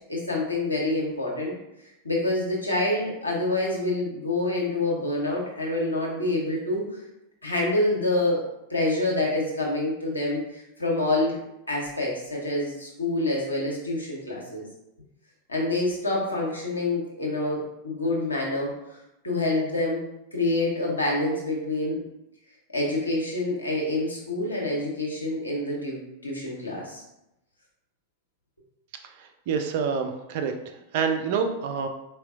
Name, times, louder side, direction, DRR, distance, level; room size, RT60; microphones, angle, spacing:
voice 1, 0.1-1.5 2.0-7.0 7.4-8.4 8.7-11.4 11.7-14.6 15.5-18.7 19.2-20.0 20.3-22.0 22.7-27.0, left 2 dB, 80° left, -3 dB, 0.9 m, -27 dB
voice 2, 29.5-30.5 30.9-31.9, right 6 dB, 50° right, 5 dB, 0.4 m, -26 dB
4.2 x 2.2 x 2.5 m, 0.87 s
figure-of-eight pair, 90°, 0 cm